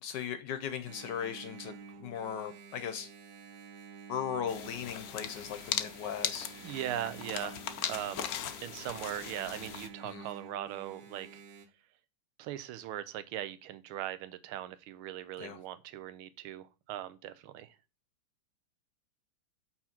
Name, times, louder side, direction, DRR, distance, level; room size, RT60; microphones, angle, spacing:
voice 1, 0.0-1.7 2.0-3.1 4.1-6.8 10.0-10.3 15.4-15.6, left 8 dB, 70° left, 1.1 m, -38 dB
Engine, 0.9-11.7, right 5 dB, 65° right, 1.0 m, -50 dB
sound 1, 4.5-9.9, left 10 dB, 85° left, 0.8 m, -39 dB
voice 2, 6.6-7.6 7.9-8.3 8.6-11.4 12.4-17.7, right 12 dB, 85° right, 1.5 m, -39 dB
5.7 x 4.4 x 5.8 m
omnidirectional pair, 2.3 m